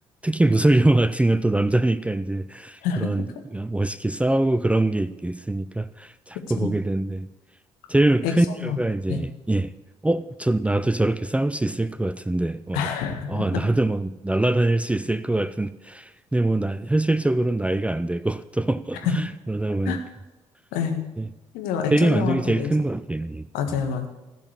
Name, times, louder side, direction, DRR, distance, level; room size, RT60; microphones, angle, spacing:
voice 1, 0.2-3.2 3.5-7.3 7.9-9.7 10.0-12.8 13.3-20.0 21.2-21.3 21.9-23.4 23.7-23.8, right 2 dB, 10° right, 15 dB, 0.5 m, -23 dB
voice 2, 2.8-3.3 6.6-6.7 8.2-8.8 9.1-9.3 12.7-13.4 19.0-19.1 19.9-20.0 20.7-21.0 21.5-22.7 23.5-24.1, left 7 dB, 65° left, 4 dB, 1.8 m, -27 dB
15.5 x 5.9 x 8.2 m, 1.1 s
figure-of-eight pair, 45°, 16 cm